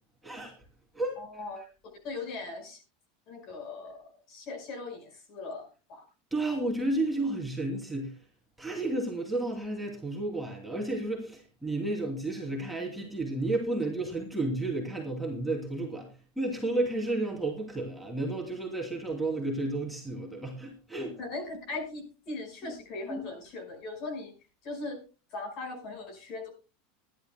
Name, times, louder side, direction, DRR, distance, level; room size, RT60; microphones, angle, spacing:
voice 1, 0.2-0.5 0.9-1.2 6.3-8.1 8.6-16.1 16.4-21.2 23.1-23.2, right 2 dB, 5° right, -1 dB, 2.9 m, -32 dB
voice 2, 1.2-1.6 2.0-2.8 3.3-6.0 21.2-24.4 24.6-25.0 25.3-26.5, left 3 dB, 45° left, 6 dB, 5.1 m, -39 dB
23.5 x 11.5 x 2.2 m, 0.33 s
supercardioid pair, 150°, 0 cm